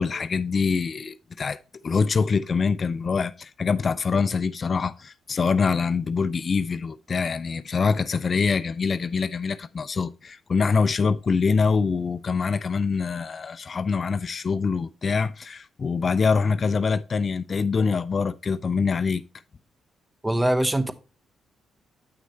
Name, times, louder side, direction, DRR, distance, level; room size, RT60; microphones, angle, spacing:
voice 1, 0.0-1.6 1.8-19.2, left 5 dB, 45° left, 0.4 m, -24 dB
voice 2, 20.2-20.9, right 1 dB, 15° right, 0.8 m, -22 dB
8.0 x 6.2 x 3.2 m
hypercardioid pair, 45°, 0 cm